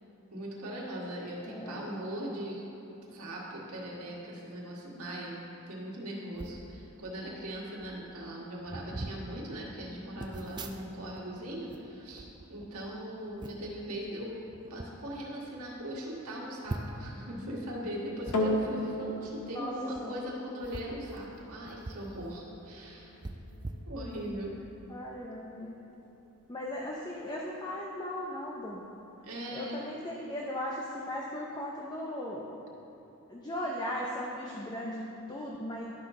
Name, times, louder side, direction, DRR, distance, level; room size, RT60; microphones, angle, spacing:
voice 1, 0.3-2.6 3.1-5.4 5.7-23.2 23.9-24.5 29.2-29.8, equal, 75° right, -4 dB, 1.7 m, -39 dB
voice 2, 1.5-2.0 19.5-19.7 20.0-20.2 24.9-25.7 26.5-28.8 29.5-32.5 33.3-35.8, left 1 dB, 20° left, -3 dB, 0.6 m, -37 dB
sound 1, 6.3-6.6 7.5-7.6 7.8-8.1 8.6-9.2 10.2-11.2 11.5-12.9 13.4-13.7 14.5-14.9 15.4-15.5 15.8-15.9 16.6-17.1 18.2-18.4 19.8-20.0 20.6-22.1 22.4-22.5 23.2-24.4 24.9-25.1, right 2 dB, 20° right, 0.4 m, -42 dB
sound 2, 18.3-26.9 27.6-27.7, left 1 dB, 90° left, 0.9 m, -38 dB
12.0 x 5.8 x 3.7 m, 2.9 s
head